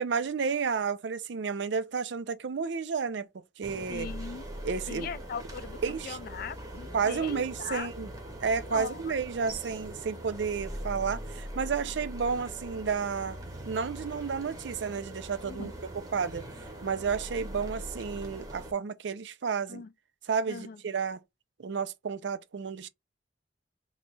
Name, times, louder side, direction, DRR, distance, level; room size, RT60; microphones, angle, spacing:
voice 1, 0.0-3.3 3.6-4.1 4.6-5.1 5.8-6.2 6.9-8.1 8.4-13.4 13.7-15.7 16.1-16.5 16.8-19.8 20.3-21.2 21.6-22.9, right 5 dB, 75° right, 0.5 m, -31 dB
sound 1, 3.6-18.7, right 1 dB, 20° right, 0.8 m, -41 dB
voice 2, 3.9-4.5 4.9-7.9 8.6-9.0 15.4-15.7 19.7-19.9 20.5-20.8, left 6 dB, 55° left, 0.3 m, -39 dB
3.1 x 2.3 x 3.9 m
head